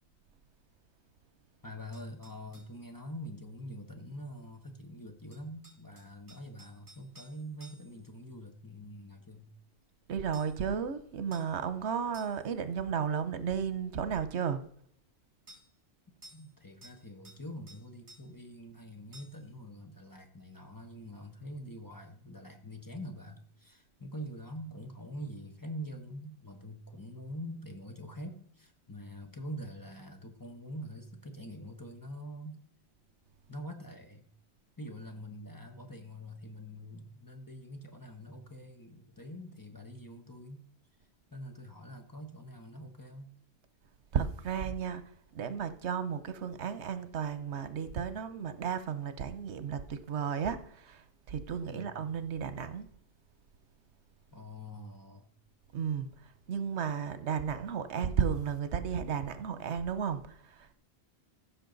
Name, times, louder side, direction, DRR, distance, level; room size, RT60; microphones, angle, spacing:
voice 1, 1.6-9.5 16.3-32.6 33.5-34.2 34.8-40.6 41.3-43.3 51.7-52.0 54.3-55.2, equal, 20° left, 1.1 m, -45 dB
sound 1, 1.9-2.7 5.3-8.1 10.3-10.6 11.3-11.6 12.1-12.5 15.5-15.7 16.2-16.5 16.8-17.4 17.7-18.3 19.1-19.5, right 1 dB, 50° right, 3.4 m, -56 dB
voice 2, 10.1-14.6 44.1-45.0 45.3-52.9 55.7-56.1 56.5-60.7, right 7 dB, 85° right, 1.1 m, -33 dB
15.5 x 6.3 x 3.9 m
omnidirectional pair, 1.1 m